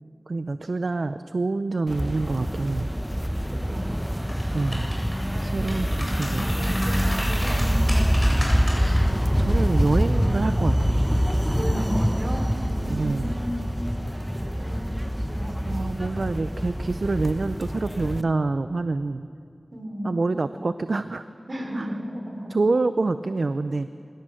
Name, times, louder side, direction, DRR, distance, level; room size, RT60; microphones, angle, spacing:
voice 1, 0.3-2.9 4.5-4.9 5.4-6.7 9.4-11.0 12.9-13.3 15.6-19.3 20.0-21.2 21.7-21.9 22.5-23.9, right 3 dB, 70° right, 11 dB, 0.5 m, -26 dB
sound 1, 1.9-18.2, equal, 5° right, 0.8 m, -25 dB
voice 2, 3.5-4.0 5.8-6.0 7.4-8.4 8.7-9.5 11.6-13.7 14.0-14.2 14.6-15.7 19.7-20.1 21.5-22.5, equal, 55° right, 1 dB, 5.2 m, -34 dB
sound 2, 4.2-5.2 5.6-9.0 9.4-9.6, equal, 10° left, 7.9 m, -34 dB
25.0 x 17.5 x 7.7 m, 2.4 s
wide cardioid pair, 50°, 0 cm